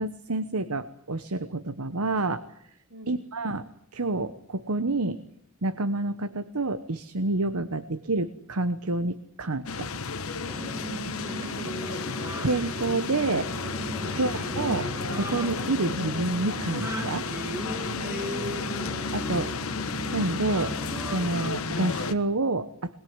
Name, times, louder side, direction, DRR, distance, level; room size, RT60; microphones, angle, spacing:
voice 1, 0.0-2.4 3.1-3.6 3.9-5.2 5.6-9.9 12.4-13.5 14.1-14.9 15.1-17.3 19.1-19.5 20.1-20.7 21.1-22.9, right 2 dB, 85° right, 12 dB, 1.1 m, -28 dB
sound 1, 9.7-22.1, left 4 dB, 75° left, 1.3 m, -32 dB
sound 2, 10.5-21.5, equal, 10° right, 1.5 m, -37 dB
voice 2, 10.6-11.8 14.0-14.2 17.9-18.9, right 1 dB, 70° right, 3 dB, 5.8 m, -42 dB
23.5 x 21.0 x 9.6 m, 0.72 s
head